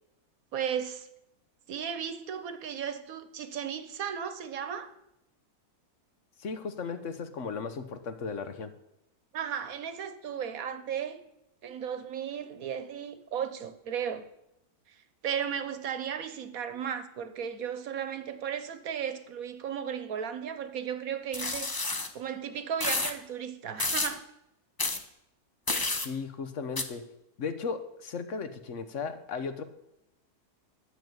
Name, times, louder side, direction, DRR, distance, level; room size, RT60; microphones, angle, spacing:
voice 1, 0.5-1.1 1.7-4.9 9.3-11.2 11.6-14.2 15.2-21.8 22.1-24.2, right 8 dB, 70° right, 1.4 m, -35 dB
voice 2, 6.4-8.7 26.0-27.1 27.4-29.6, left 5 dB, 55° left, 1.3 m, -36 dB
sound 1, 21.3-22.1 22.8-23.1 23.8-24.1 24.8-25.0 25.7-26.1 26.8-26.9, left 2 dB, 20° left, 0.6 m, -30 dB
11.5 x 7.1 x 8.0 m
omnidirectional pair, 1.6 m